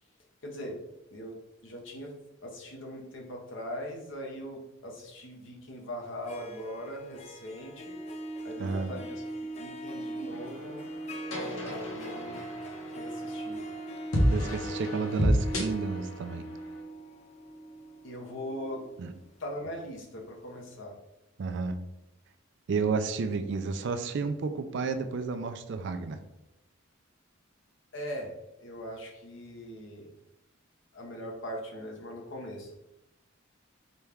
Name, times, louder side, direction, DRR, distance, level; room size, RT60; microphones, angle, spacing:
voice 1, 0.4-0.8 1.1-1.4 1.6-2.1 2.4-8.0 8.4-9.2 9.6-10.8 11.6-12.4 12.9-13.6 18.0-18.8 19.4-20.9 27.9-28.3 28.6-30.1 30.9-32.7, equal, 65° left, 0 dB, 0.9 m, -40 dB
Harp, 6.1-20.0, right 2 dB, 35° left, 0.4 m, -40 dB
voice 2, 8.6-8.9 14.3-16.4 19.0-19.1 21.4-21.8 22.7-26.2, right 4 dB, 60° right, 9 dB, 0.4 m, -31 dB
sound 1, 10.3-16.8, equal, 85° left, 1.1 m, -31 dB
4.1 x 2.3 x 3.4 m, 0.88 s
head